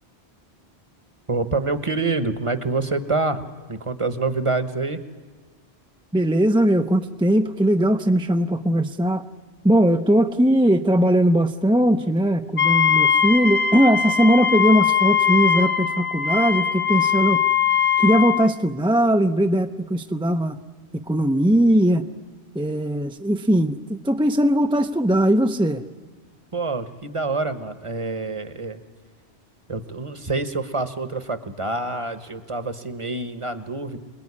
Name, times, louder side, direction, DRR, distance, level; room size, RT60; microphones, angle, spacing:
voice 1, 1.3-5.0 26.5-28.8 29.7-34.0, right 3 dB, 30° right, 11 dB, 1.2 m, -26 dB
voice 2, 6.1-9.3 9.6-17.4 18.0-20.6 21.1-22.1 22.5-25.8, right 1 dB, 5° right, 6 dB, 0.6 m, -19 dB
Wind instrument woodwind instrument, 12.6-18.5, left 7 dB, 50° left, 1.2 m, -20 dB
27.0 x 20.5 x 9.8 m, 1.4 s
omnidirectional pair, 1.1 m